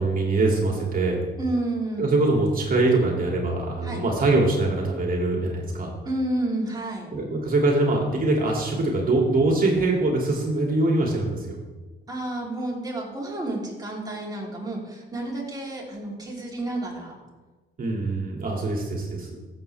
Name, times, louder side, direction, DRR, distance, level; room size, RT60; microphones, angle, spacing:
voice 1, 0.0-1.3 2.0-5.9 7.1-11.6 17.8-19.4, right 2 dB, 45° right, -1 dB, 2.6 m, -23 dB
voice 2, 1.4-2.1 3.8-4.0 6.0-7.1 12.1-17.1, right 1 dB, 20° right, -3 dB, 3.4 m, -30 dB
14.5 x 7.5 x 3.4 m, 1.3 s
cardioid pair, 90°, 20 cm